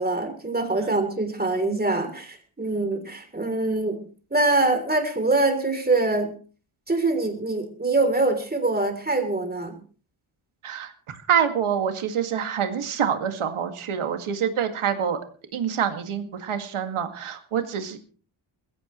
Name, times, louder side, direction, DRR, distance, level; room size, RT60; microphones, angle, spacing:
voice 1, 0.0-4.0 4.3-6.3 6.9-9.8, right 2 dB, 20° right, 5 dB, 3.3 m, -24 dB
voice 2, 11.3-15.2 15.5-18.0, right 8 dB, 85° right, 7 dB, 2.2 m, -26 dB
21.0 x 15.5 x 3.2 m, 0.40 s
wide cardioid pair, 105°, 48 cm